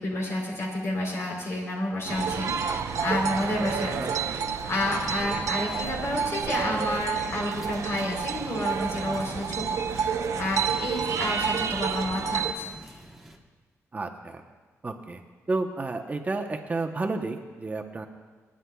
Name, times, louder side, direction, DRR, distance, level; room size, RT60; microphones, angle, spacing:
voice 1, 0.0-4.0 4.2-13.0, left 1 dB, 55° left, -1 dB, 3.6 m, -30 dB
sound 1, 2.0-13.4, right 1 dB, ahead, 1.2 m, -47 dB
sound 2, 2.1-12.5, right 6 dB, 75° right, 0.7 m, -30 dB
voice 2, 2.7-3.0 3.9-4.5 11.0-11.4 13.9-14.4 14.8-15.2 15.5-18.1, right 3 dB, 30° right, 4 dB, 0.9 m, -32 dB
26.5 x 9.7 x 2.3 m, 1.4 s
cardioid pair, 100°, 6 cm